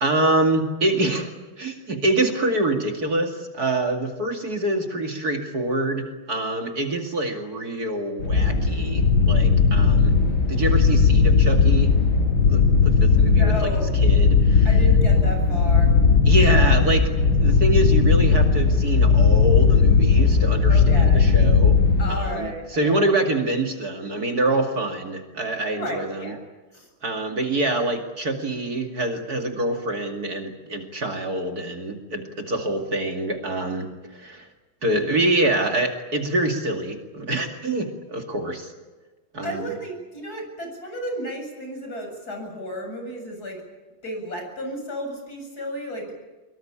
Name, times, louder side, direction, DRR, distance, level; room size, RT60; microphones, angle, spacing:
voice 1, 0.0-1.3 1.6-10.2 10.5-12.0 12.5-13.7 14.0-14.7 16.3-21.8 22.1-26.3 27.0-34.5 34.8-38.7 39.3-39.7, right 2 dB, 50° right, 4 dB, 2.8 m, -25 dB
sound 1, 8.2-22.5, left 5 dB, 80° left, 7.0 m, -17 dB
voice 2, 13.3-13.9 14.6-15.9 20.7-21.3 22.0-23.3 25.7-26.4 26.7-26.9 39.4-43.6 44.0-46.1, equal, 45° left, 3 dB, 8.3 m, -33 dB
24.5 x 23.0 x 8.7 m, 1.2 s
omnidirectional pair, 2.2 m